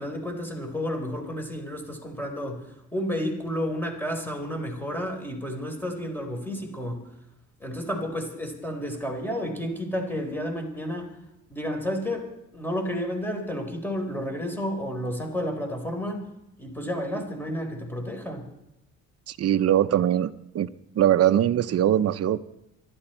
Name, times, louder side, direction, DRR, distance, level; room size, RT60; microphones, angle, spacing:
voice 1, 0.0-7.1 7.6-11.1 11.5-12.3 12.5-16.2 16.6-18.5, equal, 5° left, 2 dB, 4.3 m, -31 dB
voice 2, 19.3-20.7 21.0-22.4, right 11 dB, 55° right, 10 dB, 0.7 m, -22 dB
25.5 x 11.5 x 4.5 m, 0.84 s
cardioid pair, 90°, 30 cm